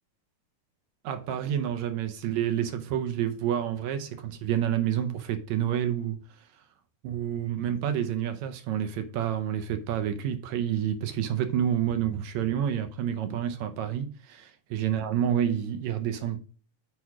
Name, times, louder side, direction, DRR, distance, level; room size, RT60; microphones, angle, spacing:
voice 1, 1.0-6.2 7.0-16.4, right 10 dB, 70° right, 1.8 m, -29 dB
6.4 x 4.8 x 5.9 m
omnidirectional pair, 3.8 m